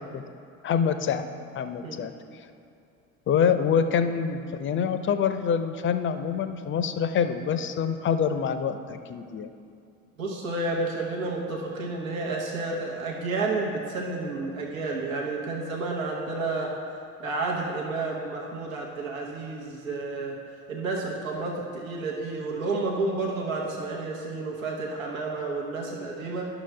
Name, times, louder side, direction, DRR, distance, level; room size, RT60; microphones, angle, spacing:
voice 1, 0.6-1.3 1.5-2.1 3.3-9.5, left 7 dB, 30° left, 10 dB, 0.5 m, -26 dB
voice 2, 10.2-16.7 17.2-20.4 20.7-26.5, right 3 dB, 85° right, -2 dB, 1.0 m, -30 dB
11.0 x 6.2 x 3.3 m, 2.4 s
figure-of-eight pair, 60°, 40 cm